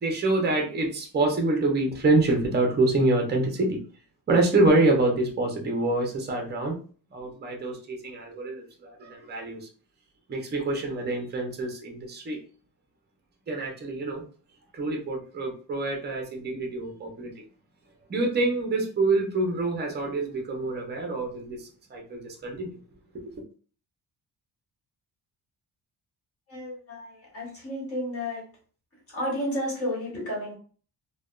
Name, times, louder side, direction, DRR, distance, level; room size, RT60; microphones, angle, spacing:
voice 1, 0.0-3.8 4.3-6.8 7.1-9.7 10.3-12.4 13.5-14.2 14.7-17.3 18.1-22.7 23.1-23.3, right 2 dB, 25° right, 2 dB, 0.6 m, -26 dB
voice 2, 26.5-28.4 29.1-30.5, equal, 35° left, -3 dB, 1.4 m, -32 dB
3.2 x 2.2 x 2.3 m, 0.41 s
wide cardioid pair, 180°, 39 cm